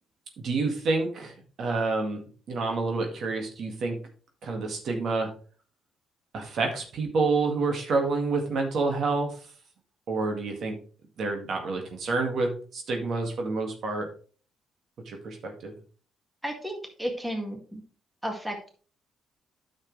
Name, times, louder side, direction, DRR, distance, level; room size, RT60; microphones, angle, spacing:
voice 1, 0.4-4.0 4.4-5.3 6.3-9.4 10.1-10.8 11.2-14.1 15.1-15.7, right 3 dB, 65° right, 3 dB, 1.9 m, -28 dB
voice 2, 16.4-17.8 18.2-18.7, equal, 5° right, 3 dB, 1.9 m, -33 dB
9.3 x 6.5 x 3.2 m, 0.40 s
cardioid pair, 90°, 0 cm